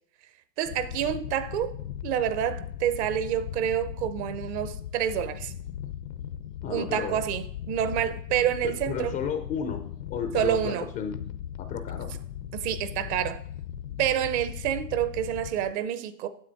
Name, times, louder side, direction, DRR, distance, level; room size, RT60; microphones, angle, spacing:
voice 1, 0.6-1.8 2.0-5.5 6.7-9.1 10.3-10.9 12.5-13.4 14.0-16.3, right 10 dB, 45° right, 0.8 m, -28 dB
sound 1, 0.7-15.7, left 10 dB, 90° left, 1.0 m, -38 dB
voice 2, 6.6-7.2 8.6-9.8 10.1-11.2 11.6-12.1, left 7 dB, 20° left, 0.4 m, -32 dB
9.5 x 7.4 x 4.0 m
hypercardioid pair, 125°, 48 cm